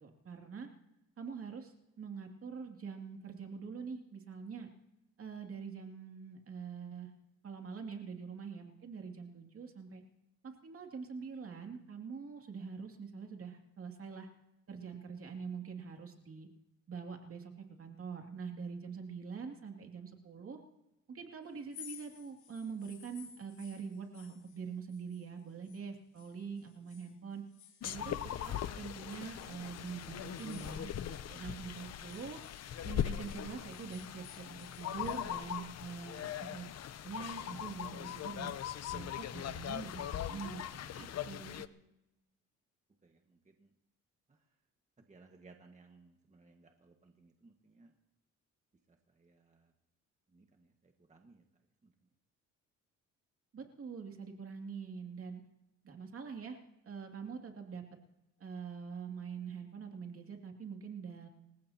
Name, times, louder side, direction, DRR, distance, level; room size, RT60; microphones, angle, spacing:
voice 1, 0.0-0.7 1.2-4.7 5.2-7.1 7.4-10.0 10.4-14.3 14.7-16.5 16.9-20.6 21.1-27.5 27.8-28.2 28.8-32.4 32.8-36.7 37.0-38.5 38.9-40.6 40.9-41.6 53.5-55.4 55.8-56.6 56.8-57.8 58.4-61.3, right 6 dB, 45° right, 3 dB, 2.5 m, -44 dB
sound 1, 21.6-25.9 26.2-28.7 29.1-31.5 31.8-35.3, left 9 dB, 75° left, 2.8 m, -57 dB
sound 2, 27.8-41.7, left 10 dB, 55° left, 0.8 m, -40 dB
sound 3, 28.2-33.3, left 1 dB, 15° left, 5.0 m, -63 dB
voice 2, 43.0-43.7 44.3-44.6 45.0-47.9 48.9-49.7 50.3-51.5 51.8-51.9, right 3 dB, 25° right, 3 dB, 1.6 m, -62 dB
27.5 x 15.5 x 2.9 m, 0.93 s
cardioid pair, 90°, 30 cm